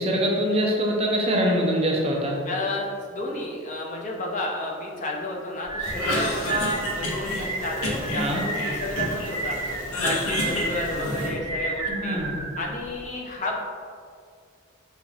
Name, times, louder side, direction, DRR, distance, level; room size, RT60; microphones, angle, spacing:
voice 1, 0.0-2.4 8.2-8.4 11.9-12.4, equal, 30° right, -1 dB, 0.5 m, -24 dB
voice 2, 2.4-9.6 10.0-12.2 12.6-13.6, left 2 dB, 35° left, -1 dB, 0.4 m, -31 dB
sound 1, 5.7-13.0, right 3 dB, 85° right, 1.0 m, -32 dB
sound 2, 5.8-11.3, right 1 dB, 65° right, 0.9 m, -39 dB
Cough, 5.9-7.4 7.8-9.3 9.6-11.5, left 1 dB, 85° left, 0.8 m, -29 dB
5.3 x 3.2 x 2.3 m, 2.2 s
head